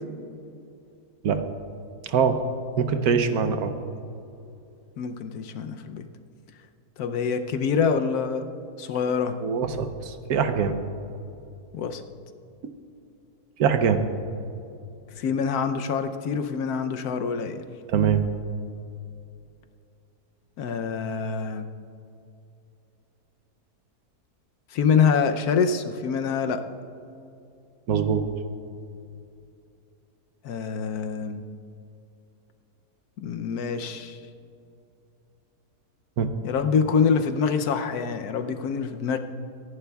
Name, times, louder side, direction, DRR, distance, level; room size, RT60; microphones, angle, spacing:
voice 1, 2.0-2.4 2.8-3.7 9.4-10.8 13.6-14.0 17.9-18.2 27.9-28.2 36.2-36.3, right 7 dB, 70° right, 8 dB, 1.2 m, -23 dB
voice 2, 5.0-6.0 7.0-8.5 8.8-9.4 11.7-12.0 15.1-17.7 20.6-21.7 24.7-26.6 30.4-31.4 33.2-34.2 36.4-39.2, left 6 dB, 75° left, 8 dB, 1.1 m, -25 dB
24.5 x 11.0 x 2.3 m, 2.6 s
omnidirectional pair, 1.7 m